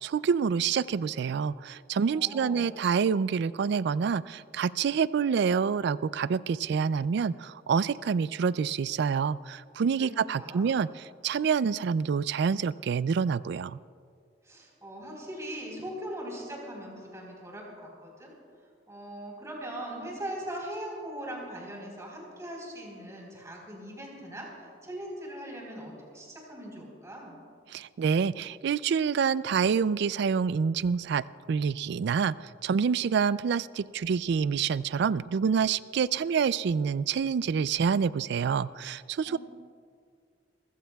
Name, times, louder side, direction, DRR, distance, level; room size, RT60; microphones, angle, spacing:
voice 1, 0.0-10.9 11.2-13.8 27.7-39.4, right 6 dB, 65° right, 18 dB, 0.3 m, -27 dB
voice 2, 2.1-2.8 9.9-10.7 14.4-18.3 18.9-27.4 39.3-39.4, right 1 dB, 15° right, -2 dB, 4.0 m, -40 dB
28.0 x 15.0 x 2.3 m, 2.2 s
head